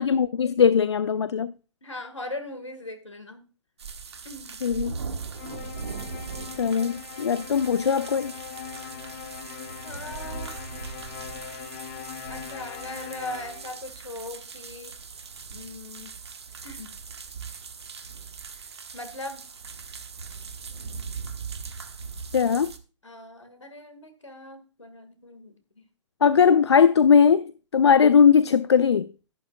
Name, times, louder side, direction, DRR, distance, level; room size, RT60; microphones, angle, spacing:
voice 1, 0.0-1.5 4.6-5.0 6.6-8.3 22.3-22.7 26.2-29.1, left 7 dB, 65° left, 0.4 m, -19 dB
voice 2, 1.8-3.4 4.3-4.6 9.8-10.9 12.3-14.9 15.5-16.1 16.6-16.9 18.5-18.6 18.9-19.5 23.0-25.8, left 2 dB, 80° left, 1.9 m, -39 dB
sound 1, 3.8-22.8, right 5 dB, 60° right, 1.2 m, -39 dB
sound 2, 5.3-13.9, left 11 dB, 35° left, 0.8 m, -41 dB
11.5 x 11.0 x 2.3 m
figure-of-eight pair, 120°, 15 cm